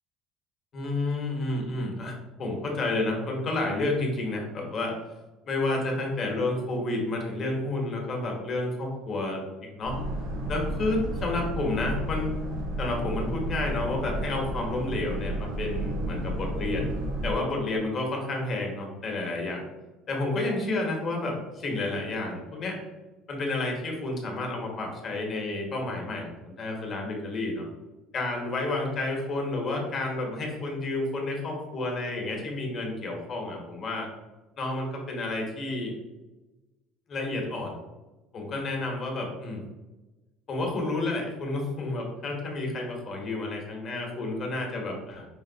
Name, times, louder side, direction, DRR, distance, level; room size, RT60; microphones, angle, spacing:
voice 1, 0.7-2.1 2.4-4.9 5.5-10.0 10.5-12.4 12.8-16.9 17.2-19.6 20.1-22.8 23.3-27.7 28.1-34.1 34.6-35.9 37.1-37.7 38.3-39.6 40.5-45.3, left 2 dB, 35° left, 0 dB, 1.1 m, -30 dB
Boat Water vehicle, 9.8-17.4, right 1 dB, 90° right, 1.1 m, -32 dB
4.9 x 2.9 x 2.7 m, 1.1 s
cardioid pair, 145°, 0 cm